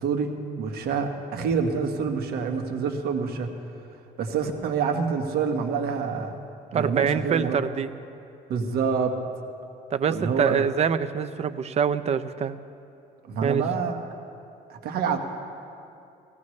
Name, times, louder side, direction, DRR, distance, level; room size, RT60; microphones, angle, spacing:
voice 1, 0.0-3.5 4.2-6.4 6.7-7.6 8.5-9.1 10.1-10.6 13.3-14.1 14.7-15.2, right 5 dB, 70° right, 4 dB, 1.4 m, -27 dB
voice 2, 6.7-7.9 9.9-12.6 13.4-13.6, right 7 dB, 40° right, 12 dB, 0.6 m, -25 dB
18.5 x 16.0 x 3.2 m, 2.6 s
cardioid pair, 110°, 17 cm